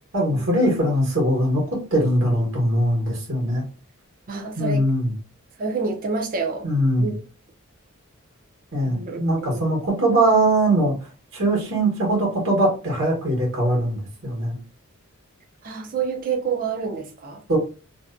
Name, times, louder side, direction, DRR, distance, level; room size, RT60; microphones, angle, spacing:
voice 1, 0.1-3.6 4.6-5.1 6.6-7.1 8.7-10.9 11.3-14.6 17.5-17.6, right 1 dB, 65° right, -2 dB, 1.3 m, -21 dB
voice 2, 4.3-4.9 5.6-6.7 7.0-7.2 8.8-9.7 15.6-17.4, right 5 dB, 40° right, 2 dB, 0.5 m, -28 dB
2.6 x 2.1 x 2.4 m, 0.34 s
head